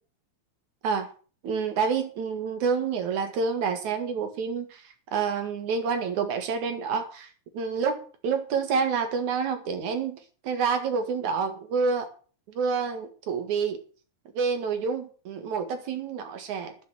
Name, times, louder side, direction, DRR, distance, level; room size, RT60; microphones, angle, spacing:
voice 1, 1.4-4.8 5.1-10.2 10.4-12.1 12.5-13.8 14.3-16.8, right 5 dB, 60° right, 7 dB, 2.9 m, -28 dB
11.0 x 7.9 x 7.6 m, 0.39 s
omnidirectional pair, 4.0 m